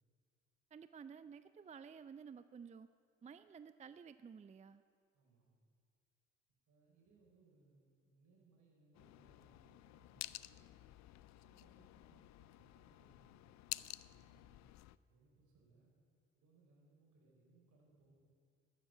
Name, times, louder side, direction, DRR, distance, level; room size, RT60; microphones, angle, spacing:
voice 1, 0.7-2.9 3.2-4.8, right 6 dB, 20° right, 13 dB, 0.4 m, -53 dB
voice 2, 5.1-5.5 6.7-10.8 11.4-13.4 14.0-14.6 15.0-15.9 16.3-18.1, right 3 dB, 65° right, -2 dB, 4.2 m, -70 dB
sound 1, 8.9-15.0, left 16 dB, 60° left, 0.4 m, -52 dB
13.5 x 7.4 x 9.0 m, 2.3 s
hypercardioid pair, 45°, 32 cm